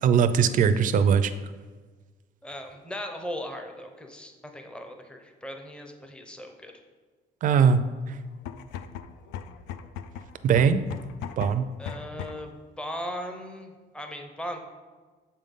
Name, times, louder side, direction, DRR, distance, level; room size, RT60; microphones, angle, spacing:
voice 1, 0.0-1.3 7.4-7.8 10.4-10.8 11.4-11.7, right 7 dB, 50° right, 11 dB, 0.5 m, -20 dB
voice 2, 2.4-6.7 11.8-14.6, equal, 5° left, 5 dB, 0.7 m, -38 dB
sound 1, 8.3-12.6, left 8 dB, 85° left, 0.4 m, -39 dB
7.0 x 5.4 x 3.6 m, 1.4 s
cardioid pair, 110°, 17 cm